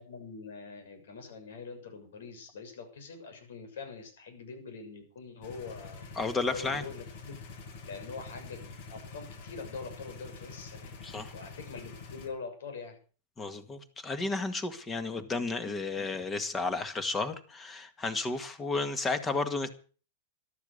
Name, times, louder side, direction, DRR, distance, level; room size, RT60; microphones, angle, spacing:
voice 1, 0.0-6.1 6.5-7.4 7.8-11.0 11.3-13.0, left 4 dB, 85° left, 6 dB, 6.9 m, -44 dB
sound 1, 5.4-12.3, left 4 dB, 60° left, 7.1 m, -46 dB
voice 2, 6.2-6.8 11.0-11.3 13.4-19.7, left 3 dB, 15° left, 11 dB, 1.8 m, -32 dB
13.5 x 12.5 x 6.8 m, 0.40 s
supercardioid pair, 150°, 0 cm